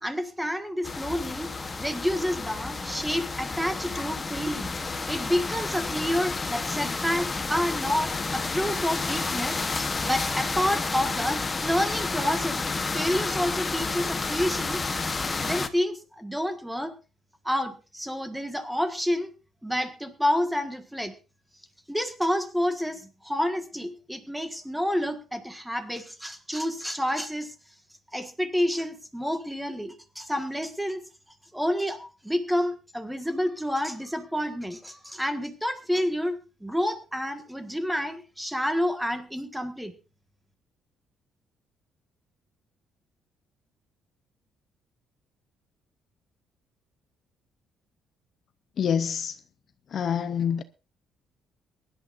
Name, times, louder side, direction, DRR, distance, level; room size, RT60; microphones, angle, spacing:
voice 1, 0.0-1.5 1.8-4.7 5.1-12.6 12.9-14.8 15.1-16.9 17.4-19.3 19.6-21.1 21.9-27.5 28.1-31.0 31.5-39.9, equal, 5° right, 1.5 m, -29 dB
sound 1, 0.8-15.7, left 3 dB, 20° left, 0.9 m, -30 dB
voice 2, 48.8-49.4 49.9-50.6, left 7 dB, 40° left, 0.6 m, -26 dB
23.0 x 11.0 x 2.5 m
cardioid pair, 175°, 0 cm